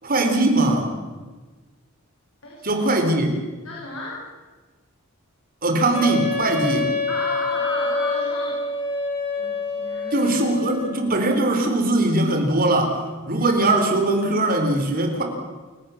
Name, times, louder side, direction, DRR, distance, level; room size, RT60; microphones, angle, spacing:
voice 1, 0.0-0.9 2.6-3.4 5.6-6.9 10.1-13.0 13.3-15.2, right 2 dB, 45° right, 4 dB, 4.3 m, -20 dB
voice 2, 2.4-2.8 3.6-4.3 7.1-8.6 9.3-10.3 13.3-13.5, left 2 dB, 75° left, -3 dB, 6.4 m, -32 dB
Wind instrument woodwind instrument, 5.9-11.0, left 3 dB, 25° left, 7.3 m, -27 dB
29.0 x 17.5 x 7.3 m, 1.3 s
head